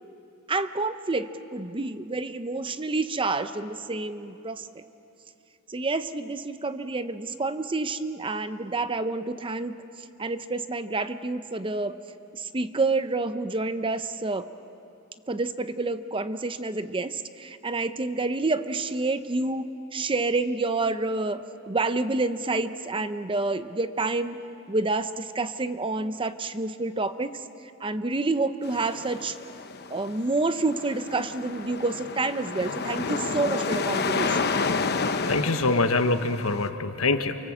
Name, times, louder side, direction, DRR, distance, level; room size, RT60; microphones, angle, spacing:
voice 1, 0.5-4.8 5.7-12.0 12.3-14.5 15.3-24.4 24.7-27.4 27.8-29.4 29.9-34.5, right 3 dB, 25° right, 11 dB, 0.7 m, -28 dB
sound 1, 28.6-36.7, left 4 dB, 50° left, 1.0 m, -30 dB
voice 2, 35.3-37.4, left 3 dB, 80° left, 8 dB, 1.3 m, -24 dB
28.5 x 24.5 x 7.4 m, 2.8 s
head